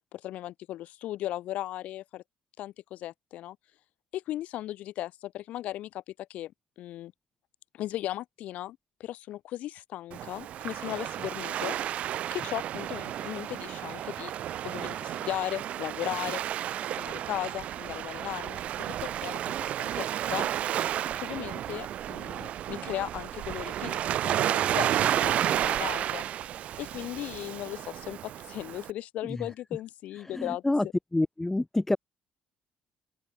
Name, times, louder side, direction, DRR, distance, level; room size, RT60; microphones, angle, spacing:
voice 1, 0.1-2.2 2.6-3.6 4.1-6.5 6.8-7.1 7.7-12.0 12.3-14.3 14.6-16.4 16.9-20.5 21.2-26.2 26.8-30.9, left 14 dB, 75° left, 6.4 m, -37 dB
Waves surf, 10.1-28.9, right 11 dB, 65° right, 1.3 m, -32 dB
voice 2, 30.3-30.8 31.1-32.0, left 2 dB, 10° left, 2.9 m, -27 dB
open air
cardioid pair, 100°, 2 cm